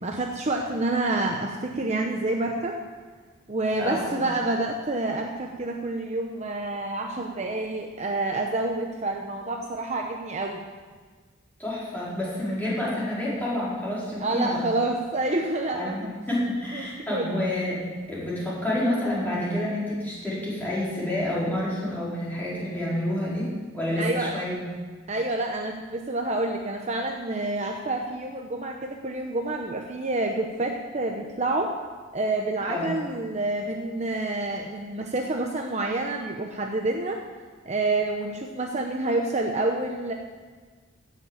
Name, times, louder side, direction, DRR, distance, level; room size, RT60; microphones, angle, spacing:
voice 1, 0.0-2.8 3.5-10.6 14.2-16.1 16.7-17.4 24.0-24.3 25.1-31.7 32.1-37.2 37.6-40.1, right 2 dB, 35° right, 2 dB, 0.9 m, -28 dB
voice 2, 3.8-4.2 11.6-14.6 15.7-17.8 18.1-24.6 32.6-32.9, left 1 dB, 10° left, -8 dB, 4.7 m, -29 dB
16.0 x 6.8 x 7.2 m, 1.5 s
head